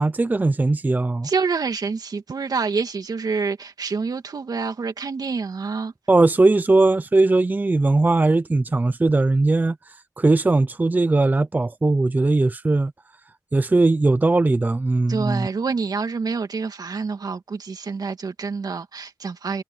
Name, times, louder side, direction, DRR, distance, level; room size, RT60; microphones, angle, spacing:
voice 1, 0.0-1.3 6.1-12.9 13.5-15.5, right 2 dB, 25° right, 0.5 m, -19 dB
voice 2, 1.2-5.9 15.1-19.6, right 5 dB, 65° right, 2.3 m, -27 dB
wide cardioid pair, 110°, 7 cm